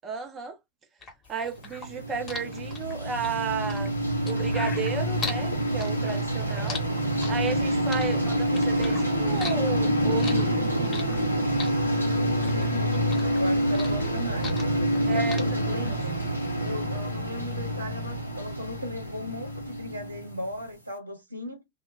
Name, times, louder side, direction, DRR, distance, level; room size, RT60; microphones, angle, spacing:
voice 1, 0.0-0.6 1.3-3.9 4.3-6.8 7.3-10.6 15.0-16.0, right 6 dB, 25° right, 0.6 m, -33 dB
sound 1, 1.0-5.4 5.8-7.6 7.9-9.0 9.3-11.3 11.6-12.7 12.9-15.0 15.3-15.4, left 4 dB, 25° left, 1.0 m, -37 dB
sound 2, 1.6-20.6, right 1 dB, 85° left, 0.7 m, -27 dB
voice 2, 11.9-14.5 15.0-16.1 16.6-21.6, left 1 dB, 80° right, 0.8 m, -37 dB
2.2 x 2.1 x 3.1 m
figure-of-eight pair, 90°, 0 cm